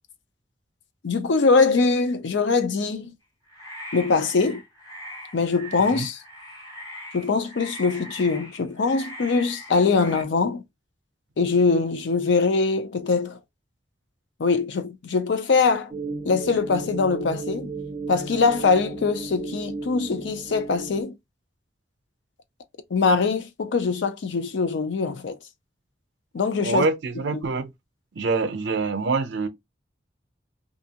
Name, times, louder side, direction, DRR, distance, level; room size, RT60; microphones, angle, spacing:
voice 1, 1.0-3.1 3.9-4.6 5.3-6.2 7.1-10.6 11.4-13.4 14.4-15.9 16.2-17.7 18.1-21.2 22.9-25.4 26.3-26.8 27.1-27.4, left 4 dB, 85° left, 0.5 m, -22 dB
sound 1, 3.5-10.2, equal, 20° left, 1.0 m, -41 dB
sound 2, 15.9-21.0, right 4 dB, 20° right, 0.5 m, -35 dB
voice 2, 26.6-27.7 28.2-29.5, right 4 dB, 75° right, 0.6 m, -25 dB
2.6 x 2.4 x 2.8 m
head